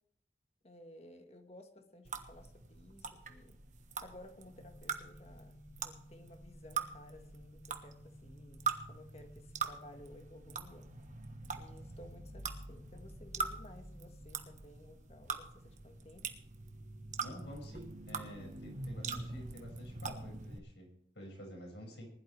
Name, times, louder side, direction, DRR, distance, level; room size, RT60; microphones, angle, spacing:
voice 1, 0.6-3.6 4.0-10.9 11.6-16.3, left 1 dB, 35° left, 6 dB, 1.6 m, -56 dB
sound 1, 2.0-20.6, right 4 dB, 40° right, 1.2 m, -43 dB
sound 2, 4.5-14.5, left 1 dB, 50° left, 4.4 m, -57 dB
voice 2, 17.2-22.1, equal, 75° left, 0 dB, 6.0 m, -50 dB
20.0 x 11.5 x 3.4 m, 0.69 s
head